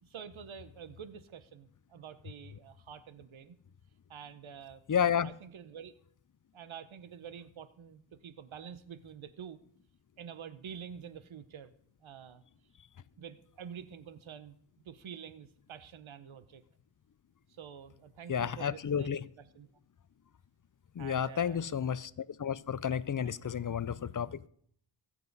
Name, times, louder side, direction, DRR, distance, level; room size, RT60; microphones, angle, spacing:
voice 1, 0.0-3.6 4.1-4.8 5.2-5.9 6.5-9.6 10.2-11.7 12.0-12.4 13.2-14.5 14.8-16.6 17.5-19.7 21.0-21.6 23.2-23.4, right 8 dB, 85° right, 1.0 m, -48 dB
voice 2, 4.9-5.3 18.3-19.2 21.0-22.1 22.4-24.5, left 8 dB, 45° left, 0.6 m, -31 dB
22.5 x 7.6 x 4.1 m
cardioid pair, 70°, 47 cm